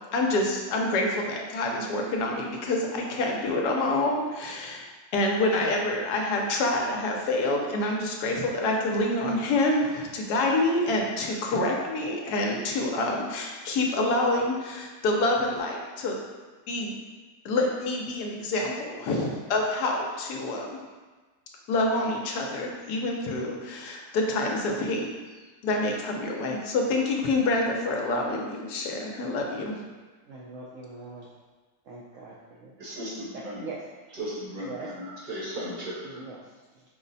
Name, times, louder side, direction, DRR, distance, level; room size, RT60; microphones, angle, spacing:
voice 1, 0.1-4.9 5.1-16.2 16.7-17.0 17.4-20.8 21.7-25.1 25.6-29.7, left 2 dB, 70° left, 0 dB, 1.2 m, -27 dB
voice 2, 30.3-31.3 31.9-32.7 33.3-33.8 34.6-34.9 36.0-36.8, right 4 dB, 75° right, -4 dB, 0.7 m, -42 dB
voice 3, 32.8-33.7 34.1-36.2, equal, 40° right, -5 dB, 0.8 m, -36 dB
5.3 x 2.1 x 3.9 m, 1.3 s
omnidirectional pair, 1.9 m